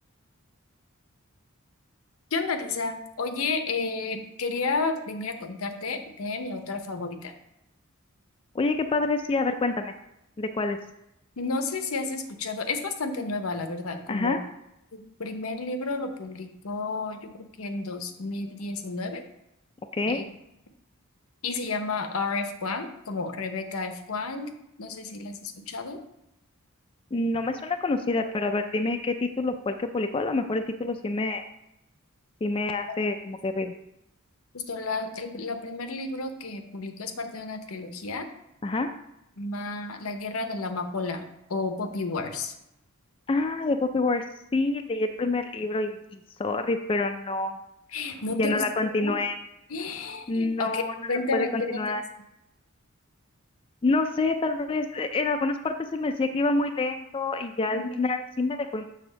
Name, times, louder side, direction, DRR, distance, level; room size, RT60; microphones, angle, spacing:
voice 1, 2.3-7.3 11.4-14.4 14.9-19.2 20.1-20.2 21.4-24.5 24.8-26.0 32.9-33.0 34.5-38.3 39.4-42.6 47.9-48.6 49.0-49.1 49.7-50.8 51.1-51.8 57.7-58.0, left 3 dB, 80° left, 7 dB, 0.8 m, -31 dB
voice 2, 8.5-9.9 10.4-10.8 14.1-14.4 19.9-20.2 27.1-31.4 32.4-33.7 38.6-38.9 43.3-44.2 44.5-47.6 48.4-49.4 50.3-50.9 51.3-52.0 53.8-58.9, left 3 dB, 25° left, 6 dB, 0.3 m, -27 dB
6.8 x 3.5 x 6.2 m, 0.84 s
head